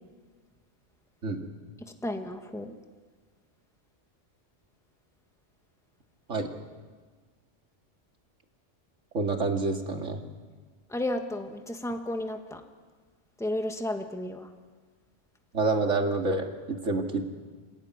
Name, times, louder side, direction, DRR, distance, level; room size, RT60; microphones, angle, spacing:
voice 1, 2.0-2.7 10.9-12.6 13.4-14.5, left 1 dB, ahead, 5 dB, 1.8 m, -32 dB
voice 2, 9.1-10.2 15.5-17.2, right 3 dB, 80° right, 3 dB, 2.6 m, -28 dB
28.0 x 18.0 x 9.7 m, 1.5 s
omnidirectional pair, 1.3 m